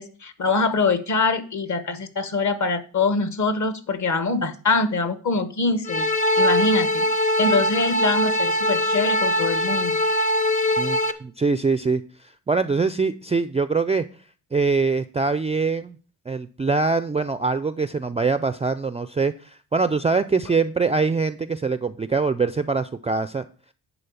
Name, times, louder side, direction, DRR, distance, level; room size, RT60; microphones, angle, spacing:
voice 1, 0.0-6.1 6.4-7.1 7.4-10.0, left 3 dB, 45° left, 12 dB, 1.1 m, -24 dB
sound 1, 5.8-11.1, left 1 dB, 20° left, 0.7 m, -22 dB
voice 2, 10.8-12.0 12.5-14.0 14.5-16.0 16.3-23.4, right 4 dB, 15° right, 12 dB, 0.3 m, -23 dB
10.0 x 4.0 x 7.0 m, 0.40 s
cardioid pair, 105°, 40 cm